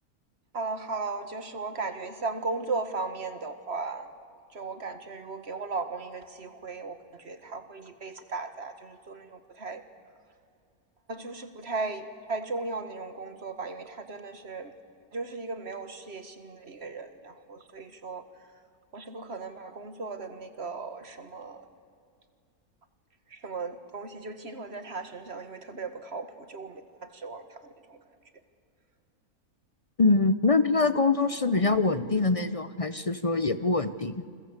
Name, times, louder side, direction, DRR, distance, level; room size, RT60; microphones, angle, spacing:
voice 1, 0.5-4.1 4.5-9.8 11.1-14.7 15.1-18.2 18.9-21.7 23.3-28.0, right 3 dB, 45° right, 9 dB, 2.0 m, -36 dB
voice 2, 30.0-34.2, left 3 dB, 35° left, 13 dB, 0.5 m, -24 dB
29.0 x 22.5 x 8.1 m, 2.3 s
omnidirectional pair, 1.6 m